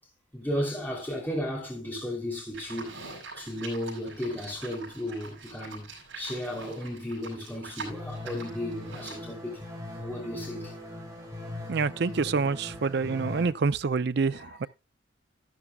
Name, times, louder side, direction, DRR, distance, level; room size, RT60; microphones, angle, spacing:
voice 1, 0.3-3.0 3.4-5.8 6.1-9.6 10.0-10.7 14.3-14.7, left 1 dB, 10° left, 3.0 m, -34 dB
Livestock farm animals working animals, 2.5-9.3, right 4 dB, 80° right, 6.1 m, -44 dB
sound 1, 7.9-13.5, left 2 dB, 15° right, 5.0 m, -40 dB
voice 2, 11.7-14.7, right 4 dB, 60° right, 0.5 m, -27 dB
13.0 x 12.5 x 2.3 m
head